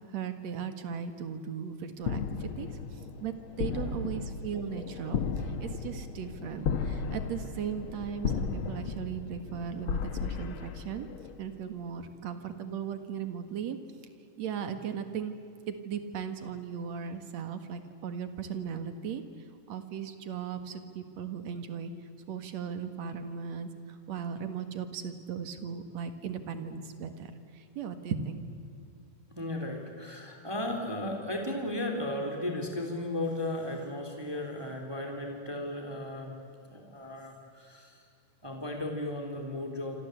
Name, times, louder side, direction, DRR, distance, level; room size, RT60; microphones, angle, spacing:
voice 1, 0.1-2.7 3.2-5.2 5.6-11.1 11.4-13.8 14.4-15.3 15.7-19.2 19.7-21.9 22.3-23.7 24.1-27.3 27.8-28.4, right 7 dB, 60° right, 8 dB, 2.7 m, -37 dB
sound 1, 2.0-11.5, left 6 dB, 60° left, 1.4 m, -35 dB
voice 2, 29.3-36.3 36.7-38.0 38.4-40.0, left 1 dB, 5° right, 3 dB, 3.1 m, -35 dB
27.0 x 26.5 x 8.1 m, 2.5 s
omnidirectional pair, 3.7 m